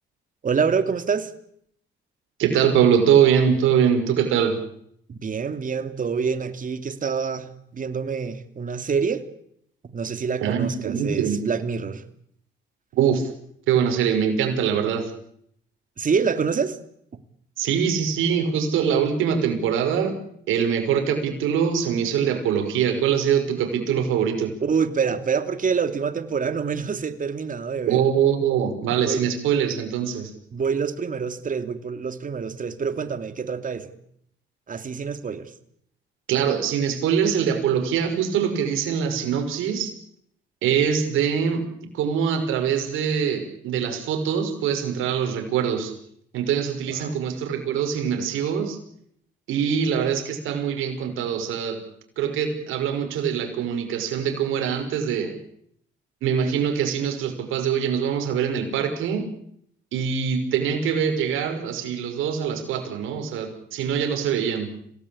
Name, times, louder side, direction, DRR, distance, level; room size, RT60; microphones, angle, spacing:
voice 1, 0.4-1.3 5.1-9.2 9.9-12.0 16.0-16.8 24.6-28.0 29.1-29.3 30.5-33.9 34.7-35.5 46.9-47.1, right 6 dB, 40° right, 10 dB, 2.8 m, -26 dB
voice 2, 2.4-4.6 10.4-11.4 12.9-13.3 13.7-15.1 17.6-20.2 20.5-24.5 27.9-30.3 36.3-40.0 40.6-41.7 41.9-46.0 46.3-48.8 49.5-51.8 52.2-55.4 56.2-59.3 59.9-64.8, right 8 dB, 90° right, 5 dB, 5.6 m, -23 dB
27.0 x 18.0 x 8.7 m, 0.70 s
cardioid pair, 90°, 20 cm